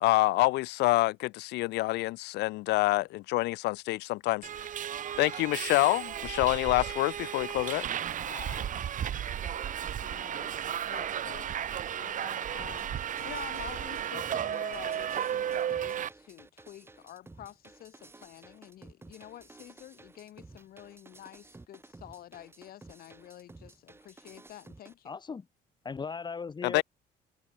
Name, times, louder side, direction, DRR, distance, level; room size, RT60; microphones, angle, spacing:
voice 1, 0.0-4.7 5.2-7.8 26.6-26.8, left 20 dB, 85° left, 1.1 m, -27 dB
Subway metro underground, 4.4-16.1, right 10 dB, 50° right, 2.0 m, -34 dB
voice 2, 8.2-11.5 12.0-12.9 13.2-25.2, left 12 dB, 65° left, 2.4 m, -49 dB
sound 1, 12.6-24.9, right 2 dB, 15° right, 3.9 m, -53 dB
voice 3, 25.0-25.4 25.8-26.8, left 5 dB, 25° left, 1.6 m, -37 dB
cardioid pair, 110°, 17 cm